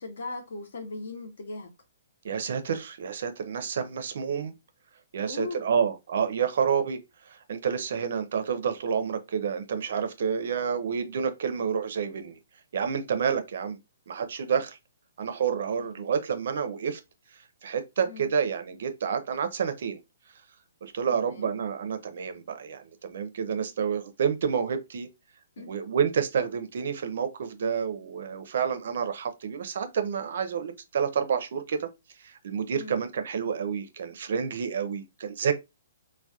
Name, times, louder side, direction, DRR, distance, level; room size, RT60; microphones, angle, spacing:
voice 1, 0.0-1.7 5.3-5.8 15.8-16.0 18.1-18.3 21.1-21.5 25.6-25.7 32.7-33.0, left 3 dB, 65° left, 0.8 m, -39 dB
voice 2, 2.2-4.5 5.1-7.0 7.3-12.4 12.7-13.8 14.1-14.8 15.2-17.0 17.6-20.0 20.8-25.1 25.7-31.9 32.2-35.5, right 7 dB, 55° right, 0.4 m, -29 dB
2.2 x 2.1 x 2.7 m
hypercardioid pair, 170°, 0 cm